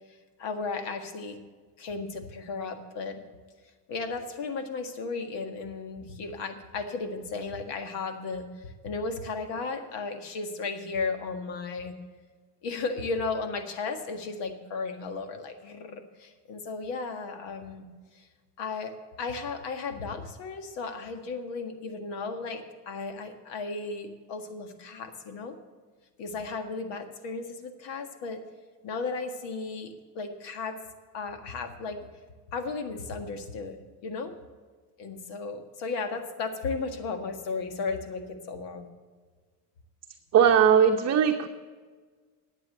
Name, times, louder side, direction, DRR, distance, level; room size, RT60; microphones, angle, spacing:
voice 1, 0.4-1.4 1.8-3.2 3.9-12.0 12.6-17.9 18.1-18.3 18.6-25.5 26.2-28.4 28.8-30.8 31.1-32.1 32.5-33.8 34.0-34.3 35.0-38.9, left 4 dB, 75° left, 6 dB, 1.8 m, -35 dB
voice 2, 40.3-41.5, right 8 dB, 40° right, 4 dB, 0.8 m, -19 dB
11.0 x 8.3 x 6.6 m, 1.5 s
cardioid pair, 105°, 43 cm